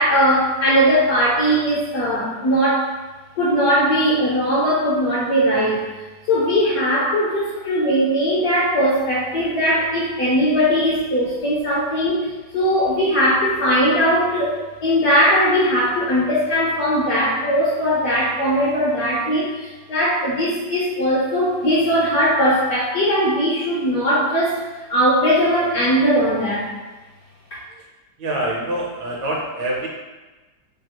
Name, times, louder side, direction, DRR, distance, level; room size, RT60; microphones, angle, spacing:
voice 1, 0.0-2.9 3.4-5.8 6.3-24.6 24.9-26.7, equal, 65° left, -6 dB, 0.9 m, -19 dB
voice 2, 28.2-29.9, right 1 dB, 75° right, -2 dB, 1.2 m, -25 dB
3.2 x 2.3 x 2.8 m, 1.2 s
omnidirectional pair, 2.1 m